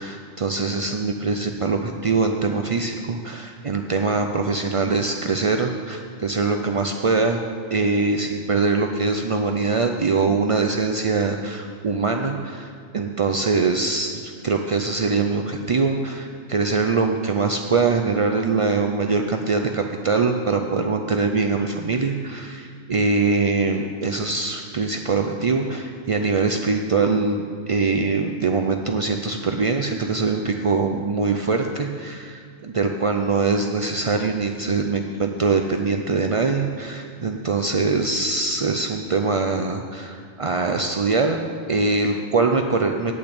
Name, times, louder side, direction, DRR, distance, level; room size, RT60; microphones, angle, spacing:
voice 1, 0.0-7.4 7.7-43.1, right 4 dB, 55° right, 4 dB, 0.3 m, -23 dB
8.8 x 8.6 x 8.8 m, 2.2 s
omnidirectional pair, 1.4 m